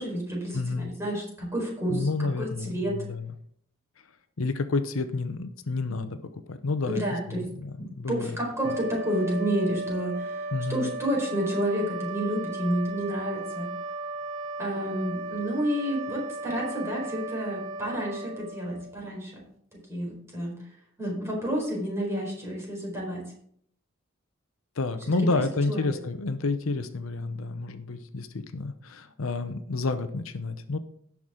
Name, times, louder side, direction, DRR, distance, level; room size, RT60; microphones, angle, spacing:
voice 1, 0.0-3.0 6.8-7.4 8.1-13.7 14.6-19.4 19.9-20.6 21.0-23.2 25.0-25.4 25.7-26.0, equal, 15° right, -2 dB, 4.3 m, -30 dB
voice 2, 0.5-0.9 1.9-3.3 4.4-8.4 10.5-10.9 24.8-30.8, left 3 dB, 80° left, 10 dB, 0.8 m, -30 dB
sound 1, 8.5-19.2, right 2 dB, 75° right, 1.9 m, -36 dB
17.0 x 6.0 x 3.7 m, 0.66 s
head